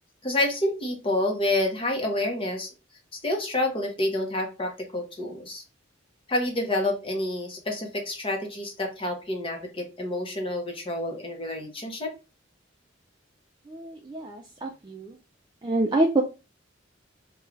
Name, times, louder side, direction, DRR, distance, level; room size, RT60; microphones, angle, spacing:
voice 1, 0.2-2.7 3.1-5.6 6.3-12.1, left 1 dB, 25° left, 3 dB, 0.8 m, -28 dB
voice 2, 13.7-15.2 15.6-16.2, right 2 dB, 20° right, 1 dB, 0.4 m, -26 dB
3.7 x 2.3 x 3.0 m, 0.30 s
head